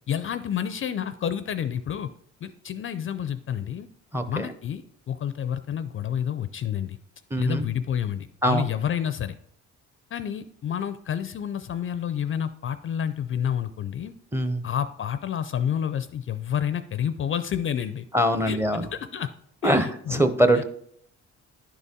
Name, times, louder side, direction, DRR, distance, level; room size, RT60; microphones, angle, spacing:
voice 1, 0.1-2.1 2.4-3.9 4.3-7.0 7.4-9.3 10.1-14.1 14.6-18.1 18.5-18.6 18.9-19.3 19.6-20.2 20.5-20.6, left 9 dB, 45° left, 11 dB, 0.4 m, -29 dB
voice 2, 4.1-4.5 7.3-7.7 8.4-8.7 14.3-14.6 18.1-18.9 19.6-20.6, right 1 dB, 10° right, 8 dB, 0.6 m, -23 dB
10.5 x 4.1 x 3.6 m, 0.66 s
cardioid pair, 90°, 30 cm